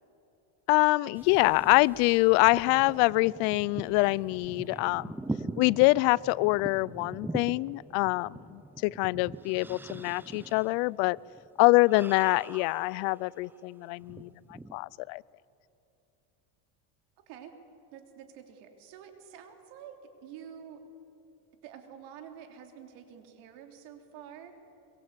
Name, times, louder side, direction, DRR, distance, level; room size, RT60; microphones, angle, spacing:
voice 1, 0.7-5.2 5.6-11.2 11.6-15.2, left 23 dB, 85° left, 24 dB, 0.6 m, -25 dB
sound 1, 1.1-13.6 14.0-14.8, right 2 dB, 5° right, 0.5 m, -42 dB
voice 2, 17.9-20.8 21.6-24.5, right 8 dB, 85° right, 5 dB, 3.2 m, -48 dB
23.5 x 22.5 x 8.2 m, 2.9 s
cardioid pair, 140°, 44 cm